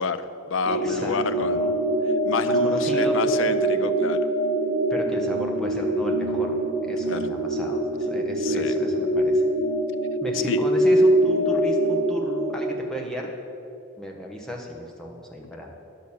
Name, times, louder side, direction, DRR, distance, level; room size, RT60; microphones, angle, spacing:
voice 1, 0.0-1.7 2.3-4.2 7.1-7.3 8.4-8.8 10.5-10.6, left 5 dB, 75° left, 12 dB, 0.5 m, -29 dB
sound 1, 0.6-12.5, right 1 dB, 50° right, 1.8 m, -23 dB
voice 2, 0.7-1.7 2.4-3.2 4.9-9.5 10.2-13.3 14.0-15.7, equal, 5° left, -1 dB, 1.0 m, -35 dB
10.0 x 6.5 x 7.1 m, 2.8 s
head